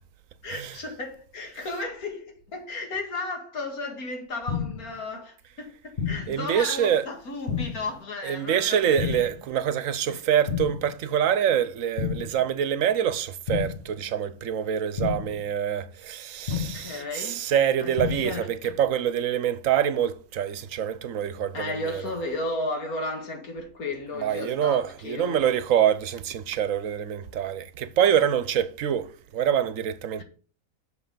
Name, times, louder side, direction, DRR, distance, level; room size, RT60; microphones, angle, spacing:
voice 1, 0.4-9.2 10.1-10.2 16.5-17.4 17.8-18.8 21.5-25.5 30.2-30.3, left 2 dB, 90° left, 2.4 m, -34 dB
sound 1, 4.5-4.9 6.0-6.4 7.5-7.9 9.0-9.4 10.5-10.9 12.0-12.4 13.5-13.9 15.0-15.4 16.5-16.9 18.0-18.4, left 6 dB, 40° left, 1.2 m, -30 dB
voice 2, 6.3-7.0 8.2-22.0 24.2-29.1 29.3-30.2, right 9 dB, 70° right, 1.1 m, -25 dB
6.5 x 5.7 x 6.6 m
omnidirectional pair, 1.5 m